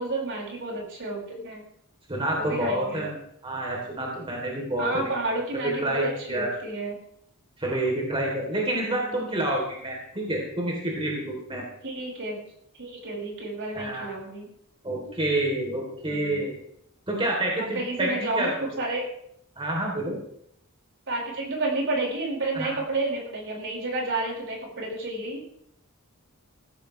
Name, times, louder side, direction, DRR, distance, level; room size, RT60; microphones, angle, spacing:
voice 1, 0.0-1.6 2.3-3.1 4.8-7.0 9.0-9.3 11.8-12.4 12.8-14.5 16.0-16.5 17.7-18.5 18.8-19.0 21.1-25.4, right 2 dB, 60° right, -1 dB, 5.1 m, -31 dB
voice 2, 2.1-3.1 3.4-5.1 5.6-6.5 7.6-11.6 13.7-14.1 14.8-16.6 17.1-18.1 18.3-18.5 19.6-20.2 22.5-22.8, right 1 dB, 25° right, -2 dB, 3.3 m, -28 dB
16.0 x 14.5 x 3.3 m, 0.71 s
head